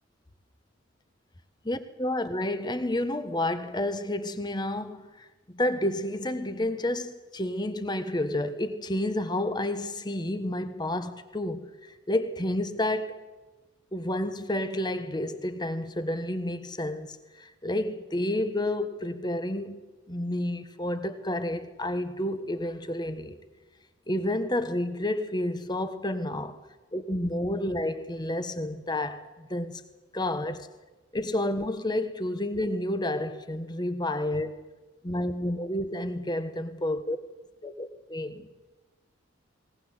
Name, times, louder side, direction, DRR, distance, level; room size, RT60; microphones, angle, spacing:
voice 1, 1.7-5.1 5.5-13.2 13.9-23.4 24.1-26.6 26.9-29.8 30.1-30.7 31.1-34.6 35.0-37.2 37.6-38.5, left 1 dB, 20° left, 1.3 m, -30 dB
19.5 x 19.5 x 8.1 m
head